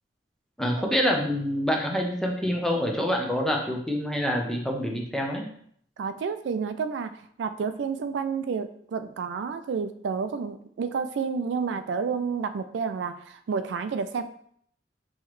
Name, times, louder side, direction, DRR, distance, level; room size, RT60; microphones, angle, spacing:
voice 1, 0.6-5.4, equal, 5° left, 0 dB, 0.7 m, -26 dB
voice 2, 6.0-14.2, right 5 dB, 80° right, 10 dB, 0.3 m, -30 dB
5.6 x 3.1 x 3.1 m, 0.63 s
head